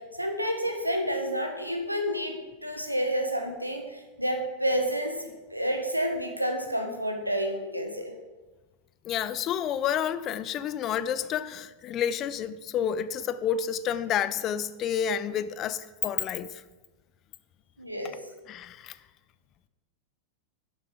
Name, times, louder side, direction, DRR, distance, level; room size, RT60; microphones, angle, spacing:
voice 1, 0.2-8.1 17.8-18.1, equal, 90° right, 1.3 m, -29 dB
voice 2, 9.0-16.5 18.5-19.0, left 9 dB, 35° left, 0.5 m, -29 dB
11.5 x 7.2 x 4.8 m
figure-of-eight pair, 90°, 0 cm